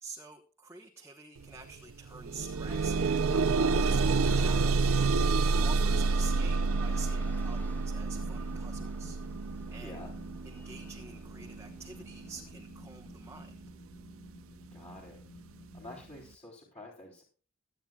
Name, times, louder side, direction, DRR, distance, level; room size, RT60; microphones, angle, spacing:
voice 1, 0.0-10.0 10.4-13.6, right 4 dB, 10° right, 0 dB, 1.1 m, -48 dB
sound 1, 1.4-1.5 1.9-12.9 13.7-13.8 14.3-14.4, right 4 dB, 85° right, 0.6 m, -29 dB
sound 2, 2.7-12.5, left 1 dB, 10° left, 0.5 m, -49 dB
voice 2, 5.4-5.8 9.8-10.1 14.7-15.2 15.7-17.2, left 1 dB, 35° left, -4 dB, 3.8 m, -48 dB
sound 3, 8.1-16.0, left 1 dB, 70° left, 5.3 m, -53 dB
21.5 x 9.1 x 2.4 m, 0.39 s
head